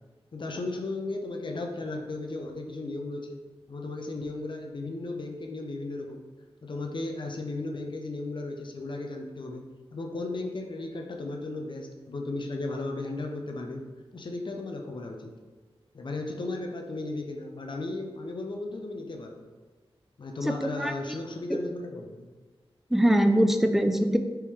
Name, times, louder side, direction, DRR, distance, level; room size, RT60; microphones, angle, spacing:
voice 1, 0.3-3.4 3.7-6.2 6.6-9.6 9.9-13.8 14.1-15.3 15.9-19.4 20.2-22.3, left 2 dB, 50° left, 2 dB, 0.6 m, -35 dB
voice 2, 20.6-21.2 21.5-21.6 22.9-24.2, right 1 dB, 5° right, 6 dB, 0.3 m, -23 dB
4.5 x 3.1 x 3.5 m, 1.3 s
wide cardioid pair, 75°, 10 cm